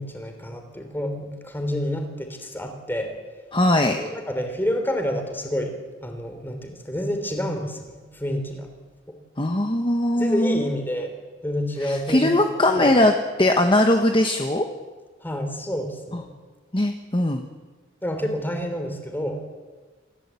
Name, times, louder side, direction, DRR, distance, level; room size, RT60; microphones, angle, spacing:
voice 1, 0.0-3.1 4.0-8.7 10.2-11.1 11.4-12.3 12.8-12.9 15.2-16.3 18.0-19.4, equal, 10° left, 5 dB, 3.4 m, -28 dB
voice 2, 3.5-4.0 9.4-10.7 11.8-14.7 16.1-16.2 16.7-17.4, left 1 dB, 25° left, 4 dB, 1.3 m, -20 dB
27.0 x 16.0 x 8.4 m, 1.3 s
head